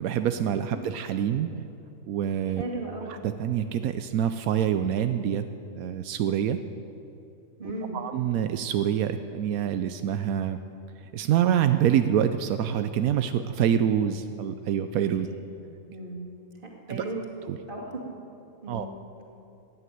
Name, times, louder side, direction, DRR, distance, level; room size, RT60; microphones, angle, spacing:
voice 1, 0.0-1.5 2.1-2.6 3.1-5.4 5.8-6.6 7.9-10.6 11.1-15.3 16.9-17.0 17.5-17.6 18.7-18.9, right 9 dB, 85° right, 9 dB, 1.1 m, -26 dB
voice 2, 2.5-3.1 7.6-8.0 15.2-15.3 15.9-16.3 16.6-17.2 17.7-18.0 18.6-18.9, right 2 dB, 40° right, -2 dB, 2.6 m, -36 dB
14.5 x 9.8 x 9.2 m, 2.8 s
omnidirectional pair, 1.5 m